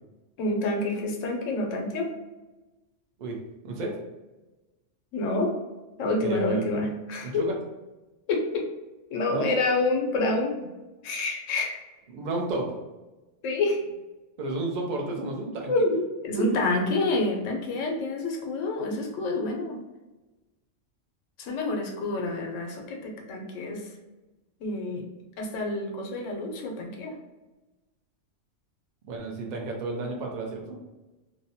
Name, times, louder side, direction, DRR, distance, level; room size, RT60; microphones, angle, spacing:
voice 1, 0.4-2.1 5.1-5.5 6.0-7.4 8.3-8.7 9.1-10.7 11.0-11.7 13.4-13.8 15.7-19.8 21.4-23.9 24.6-25.0 25.4-27.1, left 2 dB, 85° left, 1 dB, 1.0 m, -28 dB
voice 2, 6.2-6.7 7.2-7.6 9.3-9.5 12.1-12.7 14.4-15.7 16.5-16.6 29.0-30.8, right 2 dB, 55° right, 0 dB, 0.5 m, -31 dB
2.7 x 2.1 x 2.7 m, 1.1 s
omnidirectional pair, 1.3 m